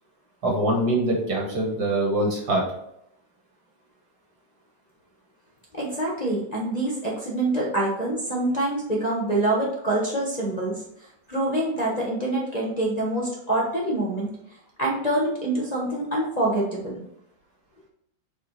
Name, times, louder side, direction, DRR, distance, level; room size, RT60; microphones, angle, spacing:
voice 1, 0.4-2.6, right 1 dB, 55° right, -1 dB, 2.0 m, -23 dB
voice 2, 5.7-10.8 11.3-14.3 14.8-17.0, right 1 dB, 25° left, -4 dB, 1.3 m, -25 dB
7.9 x 3.7 x 4.1 m, 0.77 s
omnidirectional pair, 2.0 m